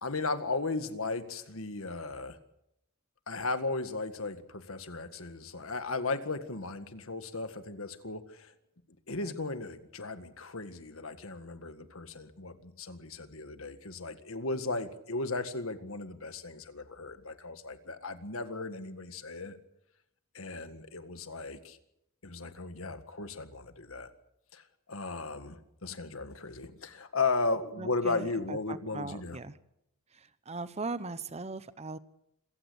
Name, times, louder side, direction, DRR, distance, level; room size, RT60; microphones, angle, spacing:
voice 1, 0.0-2.4 3.3-8.5 9.1-19.6 20.3-21.8 22.2-24.1 24.5-24.6 24.9-29.4, left 3 dB, 65° left, 9 dB, 1.9 m, -36 dB
voice 2, 27.8-29.6 30.1-32.0, right 3 dB, 30° right, 14 dB, 0.9 m, -39 dB
26.5 x 15.5 x 8.1 m, 0.80 s
head